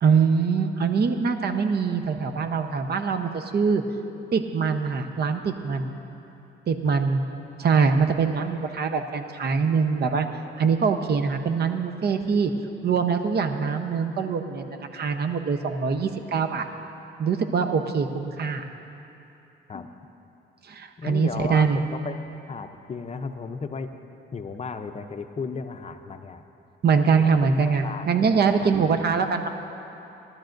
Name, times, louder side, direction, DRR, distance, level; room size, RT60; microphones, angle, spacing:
voice 1, 0.0-3.8 4.3-6.0 6.7-7.2 7.6-10.3 10.6-12.5 12.8-16.7 17.2-18.6 20.6-21.8 26.8-29.5, right 5 dB, 55° right, 7 dB, 0.9 m, -23 dB
voice 2, 21.0-24.0 24.3-26.4 27.2-27.3 27.8-28.7, left 4 dB, 35° left, 7 dB, 0.6 m, -35 dB
20.5 x 12.5 x 2.6 m, 2.8 s
cardioid pair, 90°, 20 cm